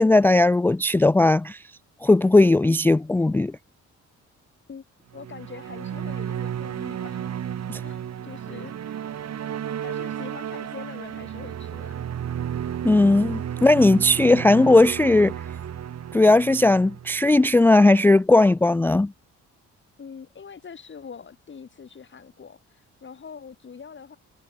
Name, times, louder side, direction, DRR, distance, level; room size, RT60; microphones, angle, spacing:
voice 1, 0.0-1.6 2.0-3.5 7.7-7.8 12.8-15.3 16.1-19.1, left 2 dB, 5° left, 0.3 m, -17 dB
voice 2, 5.1-9.1 9.8-12.1 20.0-24.2, left 6 dB, 40° left, 3.4 m, -43 dB
sound 1, 5.1-17.6, right 9 dB, 60° right, 3.1 m, -33 dB
cardioid pair, 90°, 30 cm